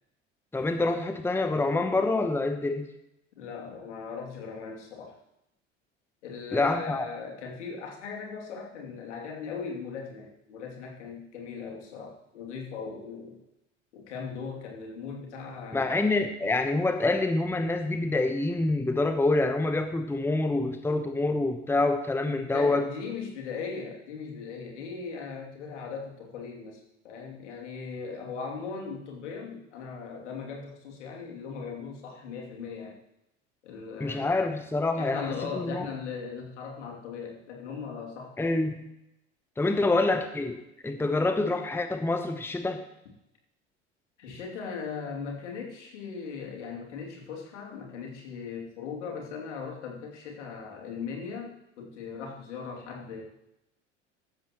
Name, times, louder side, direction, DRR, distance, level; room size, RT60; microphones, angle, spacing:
voice 1, 0.5-2.9 6.5-7.1 15.7-22.9 34.0-35.9 38.4-38.8 39.6-42.9, left 2 dB, 5° left, 8 dB, 1.0 m, -26 dB
voice 2, 3.4-5.2 6.2-13.4 13.9-16.1 22.3-33.0 33.6-34.5 34.9-38.6 44.2-53.2, left 5 dB, 70° left, 0 dB, 2.8 m, -39 dB
15.5 x 12.5 x 3.1 m, 0.85 s
figure-of-eight pair, 75°, 36 cm